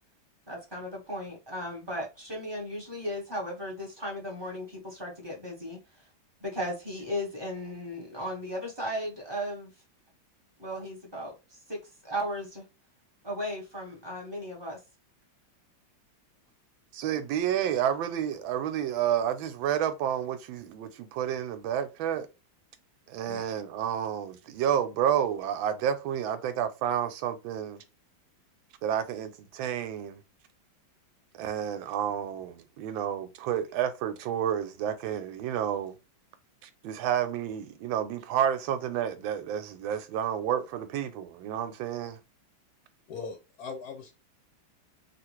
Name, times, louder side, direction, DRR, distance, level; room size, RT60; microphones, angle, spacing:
voice 1, 0.5-5.8 6.4-9.7 10.6-12.6 13.2-14.8, equal, 25° right, 0.6 m, -36 dB
voice 2, 16.9-22.3 23.1-27.8 28.8-30.2 31.4-35.9 36.6-42.2, right 9 dB, 85° right, 1.4 m, -30 dB
voice 3, 43.1-44.1, left 5 dB, 65° left, 1.0 m, -40 dB
3.5 x 2.5 x 3.0 m
omnidirectional pair, 2.1 m